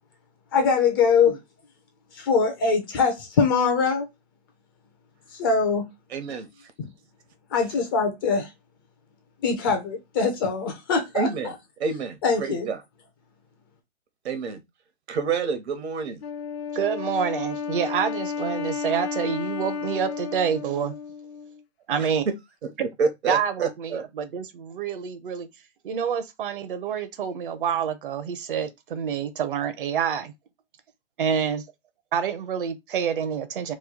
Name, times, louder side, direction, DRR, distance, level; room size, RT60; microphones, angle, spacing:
voice 1, 0.5-1.4 2.1-4.1 5.4-5.9 7.5-8.5 9.4-11.5 12.2-12.7, left 5 dB, 20° left, 0.4 m, -22 dB
voice 2, 6.1-6.5 11.1-11.5 11.8-12.2 12.5-12.8 14.2-14.6 15.1-16.2 22.0-22.3 22.6-22.7 23.0-24.0, right 5 dB, 70° right, 0.9 m, -28 dB
Wind instrument woodwind instrument, 16.2-21.6, left 6 dB, 65° left, 0.6 m, -32 dB
voice 3, 16.7-20.9 21.9-22.2 23.3-25.5 25.8-30.3 31.2-31.6 32.1-33.7, right 7 dB, 50° right, 0.7 m, -27 dB
3.1 x 2.3 x 3.6 m
hypercardioid pair, 140°, 34 cm